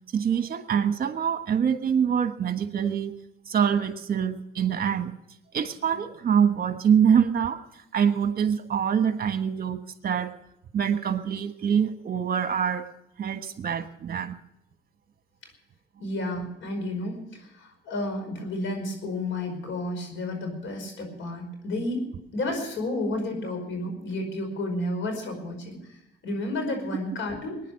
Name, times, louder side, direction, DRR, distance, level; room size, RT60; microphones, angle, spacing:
voice 1, 0.1-3.1 3.5-5.1 5.5-7.6 7.9-10.3 10.7-12.8 13.2-14.4, right 8 dB, 50° right, 8 dB, 1.4 m, -25 dB
voice 2, 16.0-27.6, left 1 dB, 75° left, 4 dB, 5.2 m, -31 dB
22.0 x 10.0 x 6.5 m, 0.80 s
cardioid pair, 90°, 20 cm